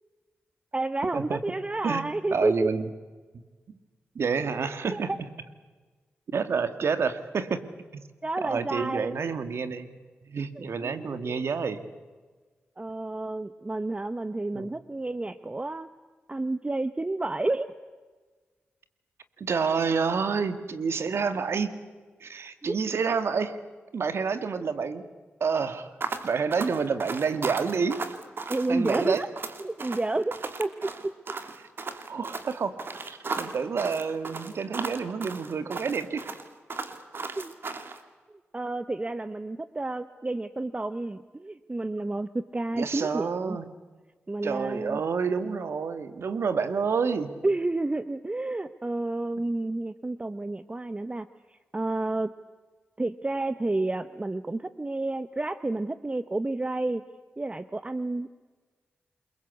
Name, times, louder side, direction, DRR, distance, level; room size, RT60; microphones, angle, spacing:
voice 1, 0.7-2.7 4.9-5.0 8.2-9.2 10.6-11.4 12.8-15.9 16.3-17.7 28.5-29.3 29.6-31.1 37.4-37.5 38.5-43.6 44.3-45.0 47.4-52.3 53.0-57.0 57.4-58.3, right 2 dB, 25° right, 12 dB, 1.0 m, -30 dB
voice 2, 1.8-2.9 3.7-3.8 4.2-5.3 6.3-7.6 7.9-8.0 8.4-10.0 10.2-11.8 14.5-14.7 19.4-21.7 22.2-23.6 23.9-25.0 25.4-26.0 26.2-28.0 28.7-29.2 32.1-32.8 33.1-36.3 42.7-43.7 44.4-47.3, right 5 dB, 70° right, 11 dB, 2.1 m, -28 dB
sound 1, 26.0-38.0, right 4 dB, 55° right, 2.8 m, -36 dB
28.5 x 22.0 x 8.4 m, 1.4 s
cardioid pair, 55°, 4 cm